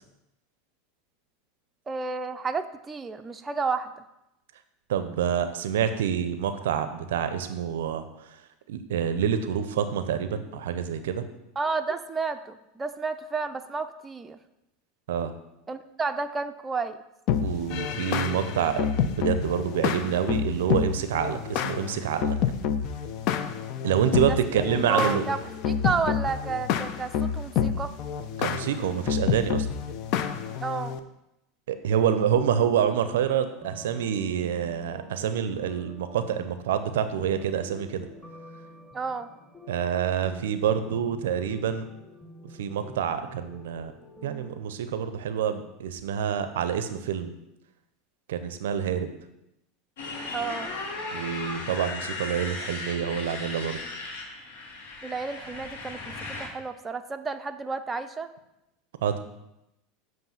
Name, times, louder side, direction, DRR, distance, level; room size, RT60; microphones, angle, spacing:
voice 1, 1.9-4.0 11.6-14.4 15.7-17.0 24.3-24.4 24.9-27.9 30.6-31.0 38.9-39.3 50.3-50.8 55.0-58.3, right 4 dB, 20° right, 7 dB, 0.4 m, -31 dB
voice 2, 4.9-8.0 8.7-11.2 15.1-15.3 17.4-22.4 23.8-25.2 28.4-29.7 31.7-38.1 39.7-41.9 42.6-43.9 44.2-47.3 48.3-49.1 51.1-53.8 59.0-59.2, right 8 dB, 75° right, 10 dB, 0.5 m, -27 dB
sound 1, 17.3-31.0, left 8 dB, 55° left, 0.4 m, -28 dB
sound 2, 32.7-44.6, left 1 dB, 5° left, 1.4 m, -48 dB
Motorcycle, 50.0-56.5, left 3 dB, 75° left, 1.2 m, -36 dB
7.7 x 2.6 x 5.5 m, 0.88 s
hypercardioid pair, 95°, 0 cm